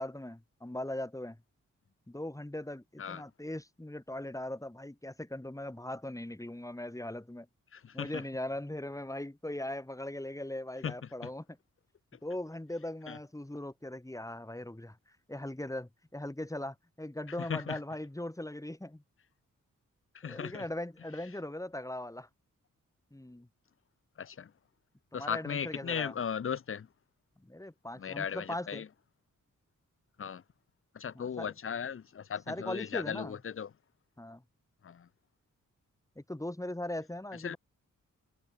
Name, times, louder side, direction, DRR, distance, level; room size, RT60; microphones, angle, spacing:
voice 1, 0.0-1.4 2.1-7.5 7.9-11.6 12.2-15.0 15.3-19.0 20.2-22.3 23.1-23.5 25.1-26.1 27.4-28.9 31.1-31.5 32.5-33.4 34.2-34.4 36.2-37.6, left 1 dB, 10° left, 2.6 m, -39 dB
voice 2, 7.7-8.2 10.8-10.9 11.2-11.3 13.1-13.2 17.4-17.8 20.1-20.6 24.2-24.5 25.1-26.9 28.0-28.9 30.2-30.4 30.9-33.7 34.8-35.1 37.4-37.6, left 7 dB, 40° left, 0.7 m, -37 dB
supercardioid pair, 45°, 33 cm